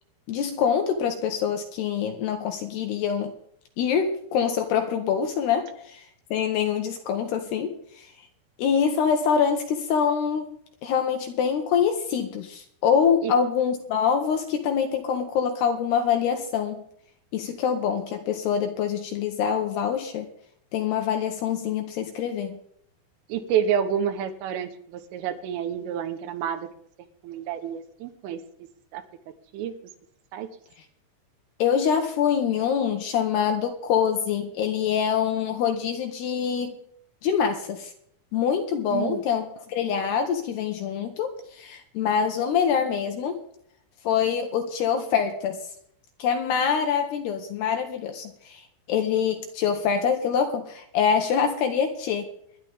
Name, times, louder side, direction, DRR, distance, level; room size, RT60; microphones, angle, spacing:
voice 1, 0.3-3.3 3.8-6.0 6.3-8.1 8.6-10.5 10.8-16.8 17.3-20.3 20.7-22.6 31.6-36.8 37.2-37.9 38.3-43.4 44.0-45.6 46.2-48.6 48.9-52.3, left 7 dB, 70° left, 5 dB, 2.8 m, -25 dB
voice 2, 23.3-26.7 27.2-28.4 28.9-29.0 29.5-29.7 30.3-30.5 38.9-39.2, right 8 dB, 85° right, 8 dB, 3.7 m, -28 dB
24.0 x 11.0 x 3.6 m, 0.66 s
omnidirectional pair, 5.7 m